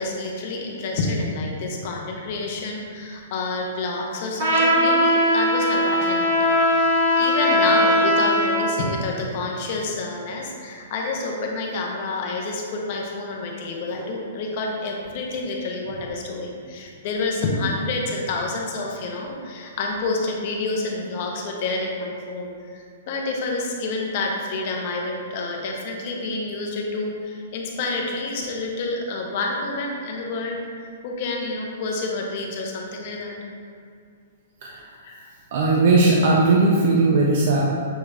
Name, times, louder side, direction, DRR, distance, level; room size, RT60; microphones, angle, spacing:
voice 1, 0.0-30.6 31.0-33.3 35.0-35.3, left 3 dB, 35° left, 0 dB, 0.6 m, -28 dB
Trumpet, 4.4-8.6, equal, 65° right, 1.0 m, -19 dB
voice 2, 35.5-37.6, right 3 dB, 45° right, -3 dB, 0.4 m, -18 dB
6.3 x 2.4 x 3.1 m, 2.3 s
hypercardioid pair, 175°, 0 cm